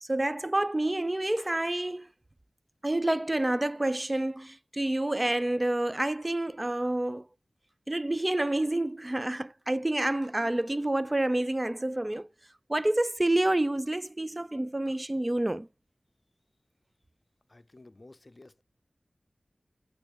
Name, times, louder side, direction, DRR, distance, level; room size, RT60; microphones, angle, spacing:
voice 1, 0.0-2.1 2.8-7.3 7.9-12.3 12.7-15.7, right 1 dB, 25° right, 0.3 m, -28 dB
voice 2, 17.5-18.6, left 2 dB, 40° left, 0.5 m, -53 dB
8.7 x 5.2 x 2.9 m
wide cardioid pair, 50°, 0 cm